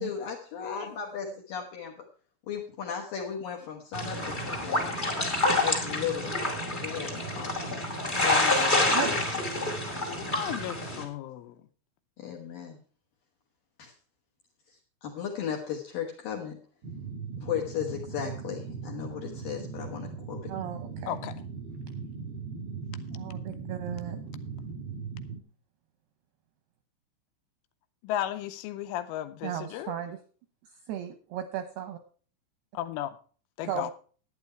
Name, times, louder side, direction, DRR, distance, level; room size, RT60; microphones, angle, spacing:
voice 1, 0.0-1.9 2.5-4.9 5.5-6.4 6.7-7.8 8.2-9.2 12.2-12.8 13.8-13.9 15.0-16.6 17.4-20.5, left 8 dB, 65° left, 2.3 m, -36 dB
sound 1, 3.9-11.0, left 2 dB, 25° left, 1.1 m, -28 dB
voice 2, 10.1-11.6 21.1-21.3 28.0-30.0 32.7-33.2 33.6-33.9, left 12 dB, 80° left, 3.2 m, -34 dB
sound 2, 16.8-25.4, right 5 dB, 55° right, 1.5 m, -39 dB
voice 3, 20.5-21.2 23.1-24.2 29.4-30.2 30.9-32.0 33.6-33.9, right 10 dB, 80° right, 2.4 m, -36 dB
11.5 x 9.6 x 4.5 m
omnidirectional pair, 5.7 m